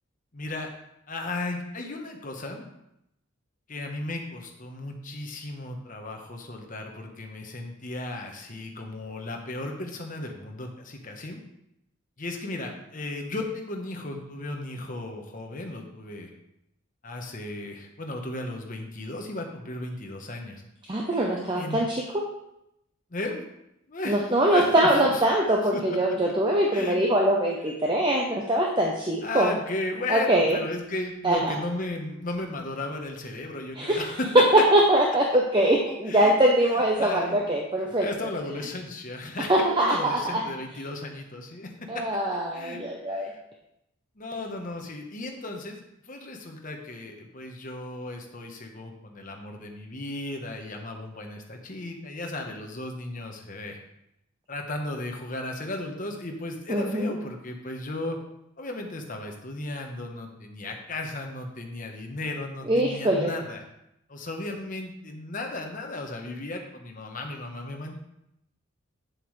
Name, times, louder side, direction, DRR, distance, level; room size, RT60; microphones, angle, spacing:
voice 1, 0.3-0.7 1.1-2.7 3.7-11.4 12.2-16.3 17.0-20.6 21.6-21.8 23.1-23.4 23.9-25.2 25.7-25.8 26.7-27.0 29.2-34.3 36.1-36.3 36.6-37.5 38.0-41.7 42.5-42.8 43.1-43.4 44.2-45.8 46.0-53.8 54.5-58.2 58.6-63.6 64.1-68.0, left 2 dB, 40° left, 2 dB, 1.0 m, -35 dB
voice 2, 20.9-22.2 24.1-29.5 30.1-30.6 31.2-31.6 33.8-34.0 34.3-38.1 39.5-40.4 41.9-43.3 56.7-57.1 62.7-63.3, right 1 dB, 20° right, -1 dB, 0.7 m, -22 dB
8.1 x 7.6 x 3.2 m, 0.82 s
head